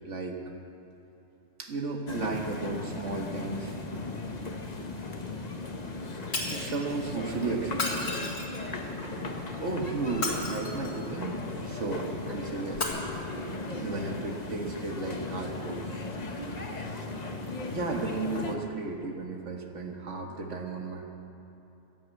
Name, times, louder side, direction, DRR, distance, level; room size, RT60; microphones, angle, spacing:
voice 1, 0.1-0.4 1.6-3.7 6.5-8.3 9.6-12.9 13.8-15.8 17.7-21.0, right 3 dB, 65° right, 2 dB, 1.8 m, -34 dB
sound 1, 2.1-18.6, left 2 dB, 35° left, 1.1 m, -37 dB
Shatter, 6.3-6.8 7.7-8.7 10.1-11.0 12.7-12.9, left 2 dB, 70° left, 2.3 m, -33 dB
15.5 x 10.0 x 8.2 m, 2.9 s
omnidirectional pair, 1.3 m